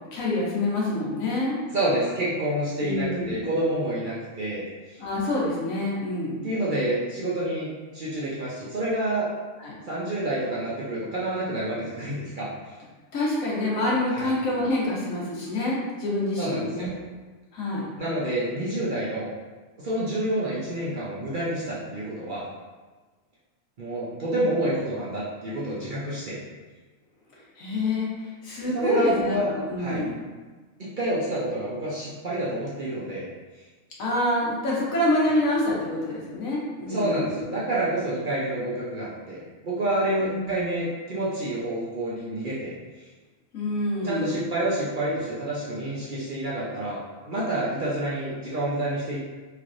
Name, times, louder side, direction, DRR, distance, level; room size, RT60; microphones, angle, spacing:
voice 1, 0.1-1.6 2.8-3.4 5.0-6.4 9.6-9.8 13.1-16.9 17.5-17.9 27.6-30.1 34.0-37.5 40.2-40.6 43.5-44.4, left 1 dB, 80° left, -5 dB, 1.3 m, -27 dB
voice 2, 1.7-5.0 6.4-7.7 7.9-9.3 9.9-12.7 14.1-14.3 16.4-16.9 18.0-19.3 19.8-22.5 23.8-26.4 28.7-29.5 29.8-30.0 30.8-33.3 36.9-42.7 43.0-43.1 44.0-49.2, right 1 dB, 50° right, -7 dB, 0.6 m, -28 dB
3.2 x 3.2 x 2.5 m, 1.4 s
omnidirectional pair, 1.4 m